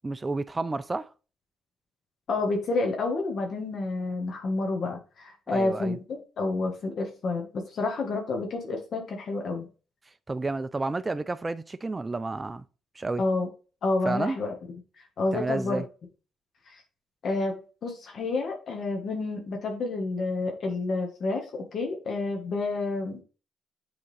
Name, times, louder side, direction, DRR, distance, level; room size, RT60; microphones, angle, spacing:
voice 1, 0.0-1.1 5.5-6.0 10.3-12.6 13.0-13.2 14.0-14.4 15.3-15.9, right 3 dB, 20° right, 0.4 m, -30 dB
voice 2, 2.3-9.7 13.2-13.5 13.8-14.5 15.2-15.8 16.7-16.8 17.2-17.5 17.8-23.2, left 3 dB, 60° left, 1.4 m, -29 dB
8.0 x 3.6 x 3.3 m
cardioid pair, 90°, 0 cm